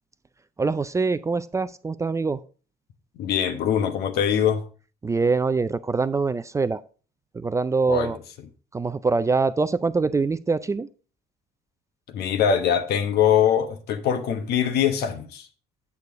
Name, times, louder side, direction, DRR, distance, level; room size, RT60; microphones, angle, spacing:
voice 1, 0.6-2.4 5.0-6.8 7.3-8.2 8.7-10.9, right 4 dB, 20° right, 0.4 m, -24 dB
voice 2, 3.2-4.7 7.9-8.1 12.1-15.5, left 8 dB, 70° left, 1.1 m, -22 dB
8.3 x 6.7 x 3.5 m
cardioid pair, 110°, 17 cm